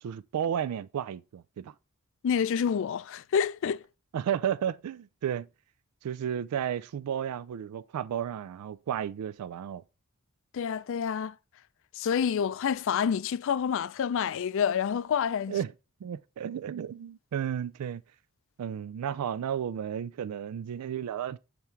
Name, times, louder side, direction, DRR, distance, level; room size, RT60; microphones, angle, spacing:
voice 1, 0.0-1.7 4.1-5.5 6.0-9.8 15.5-15.7 16.0-18.0 18.6-21.4, right 9 dB, 90° right, 0.3 m, -33 dB
voice 2, 2.2-3.8 10.5-11.3 12.0-15.5, left 7 dB, 60° left, 0.3 m, -28 dB
7.0 x 3.5 x 4.5 m
head